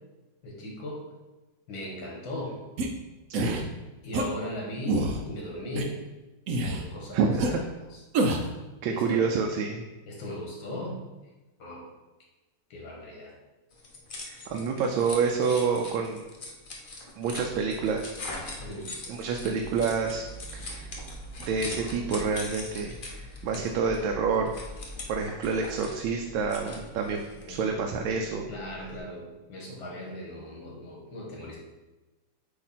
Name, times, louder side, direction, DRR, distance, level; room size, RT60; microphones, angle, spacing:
voice 1, 0.4-1.0 1.7-2.6 4.0-6.0 6.6-7.2 7.5-7.6 7.9-8.0 8.9-9.2 10.1-11.0 11.6-11.8 12.7-13.3 18.6-18.9 27.4-27.6 28.5-31.6, left 1 dB, 80° left, -2 dB, 2.2 m, -38 dB
sound 1, 2.8-2.9 3.3-3.6 4.1-4.3 4.9-5.2 5.8-5.9 6.5-6.8 7.4-7.5 8.1-8.5, right 2 dB, 65° right, 0.9 m, -26 dB
voice 2, 3.3-3.7 7.1-7.6 8.8-9.8 14.3-16.2 17.2-18.4 19.1-20.2 20.5-20.9 21.4-24.5 25.1-27.2 27.5-28.5, right 5 dB, 85° right, 2 dB, 1.4 m, -28 dB
sound 2, 13.7-27.6, left 2 dB, 55° left, 0.5 m, -42 dB
sound 3, 17.2-29.0, equal, 15° left, 1.5 m, -46 dB
8.1 x 2.8 x 4.2 m, 1.1 s
omnidirectional pair, 2.1 m